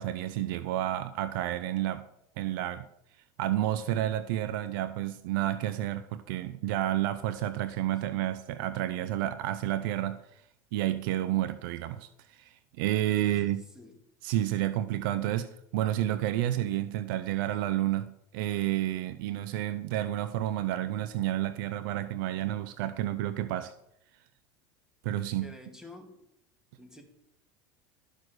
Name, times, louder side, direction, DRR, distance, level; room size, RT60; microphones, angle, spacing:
voice 1, 0.0-2.1 2.4-2.8 3.4-10.2 10.7-13.6 14.2-23.7 25.0-25.5, right 13 dB, 75° right, 0.6 m, -30 dB
voice 2, 13.3-14.0 25.4-26.2 26.8-27.0, left 2 dB, 5° right, 2.6 m, -49 dB
12.5 x 6.2 x 6.5 m
supercardioid pair, 105°, 11 cm